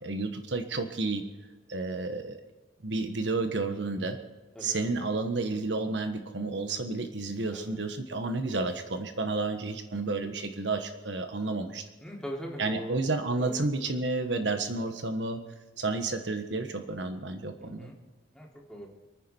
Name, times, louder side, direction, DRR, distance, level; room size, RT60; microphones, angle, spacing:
voice 1, 0.0-1.2 1.7-2.4 2.8-4.2 4.6-11.8 12.6-15.4 15.8-17.9, right 3 dB, 75° right, 7 dB, 1.4 m, -31 dB
voice 2, 12.0-13.0 13.4-13.6 17.6-18.0 18.3-18.9, equal, 5° left, -3 dB, 3.5 m, -41 dB
28.5 x 9.8 x 4.6 m, 1.2 s
head